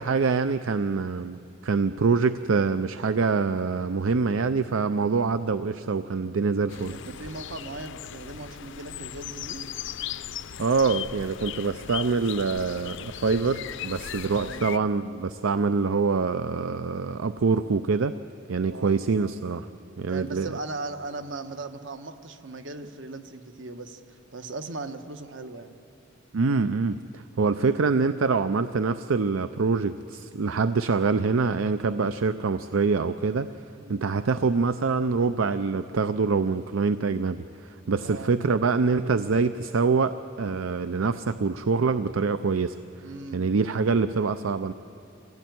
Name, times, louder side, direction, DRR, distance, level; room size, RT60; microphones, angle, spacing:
voice 1, 0.0-6.9 10.6-18.1 18.5-19.7 20.0-20.5 26.3-33.5 33.9-42.8 43.3-44.7, right 4 dB, 80° right, 12 dB, 0.6 m, -25 dB
voice 2, 6.6-9.7 14.4-14.7 18.7-19.0 20.1-25.8 33.8-34.0 38.0-38.4 43.0-43.6, right 3 dB, 65° right, 8 dB, 1.3 m, -38 dB
sound 1, 6.7-14.8, left 9 dB, 65° left, 0.6 m, -38 dB
25.5 x 17.0 x 9.4 m, 2.8 s
head